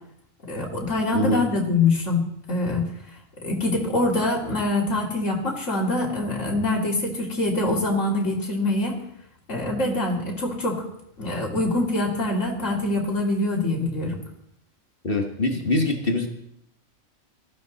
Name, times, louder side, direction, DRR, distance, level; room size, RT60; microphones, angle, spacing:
voice 1, 0.5-2.8 3.4-9.0 9.5-10.8 11.2-14.2, left 2 dB, 65° left, -1 dB, 3.1 m, -24 dB
voice 2, 1.1-1.4 15.0-16.3, left 2 dB, 45° left, 3 dB, 1.7 m, -23 dB
18.5 x 14.0 x 4.1 m, 0.75 s
omnidirectional pair, 1.4 m